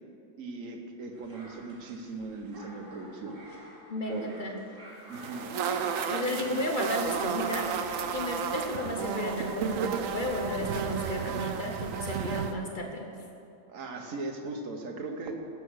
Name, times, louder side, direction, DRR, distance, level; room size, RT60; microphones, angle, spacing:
voice 1, 0.4-3.4 4.1-4.3 5.1-5.5 6.4-6.6 13.7-15.4, right 3 dB, 50° right, 3 dB, 1.3 m, -38 dB
sound 1, 1.1-6.8, equal, 30° right, 2.3 m, -51 dB
voice 2, 3.9-4.6 6.1-7.7 8.1-13.1, left 1 dB, 45° left, 2 dB, 0.6 m, -33 dB
sound 2, 5.1-12.5, right 6 dB, 65° right, 0.8 m, -32 dB
16.0 x 6.1 x 6.3 m, 2.7 s
omnidirectional pair, 2.1 m